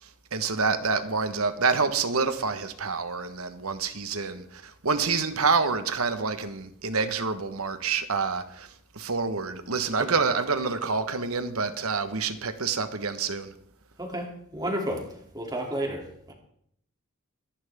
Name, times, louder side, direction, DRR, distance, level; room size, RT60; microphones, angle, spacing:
voice 1, 0.0-13.5, right 4 dB, 80° right, 1.3 m, -27 dB
voice 2, 14.0-16.3, right 1 dB, 20° right, 2.9 m, -32 dB
24.5 x 11.0 x 3.6 m
head